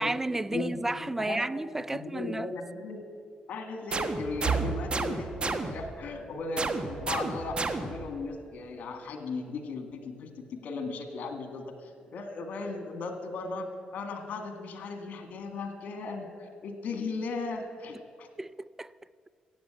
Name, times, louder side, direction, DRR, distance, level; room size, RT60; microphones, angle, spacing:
voice 1, 0.0-2.5 18.4-18.9, right 2 dB, 15° right, 0.4 m, -32 dB
voice 2, 0.5-1.4 1.9-3.0 3.5-13.7 13.9-18.3, left 3 dB, 70° left, 2.0 m, -37 dB
sound 1, 3.9-6.0 6.6-8.1, right 3 dB, 35° right, 1.1 m, -33 dB
sound 2, 4.4-16.3 16.7-17.0 17.3-17.5 18.4-18.8, right 6 dB, 55° right, 1.3 m, -42 dB
15.0 x 8.5 x 9.0 m
cardioid pair, 85°, 3 cm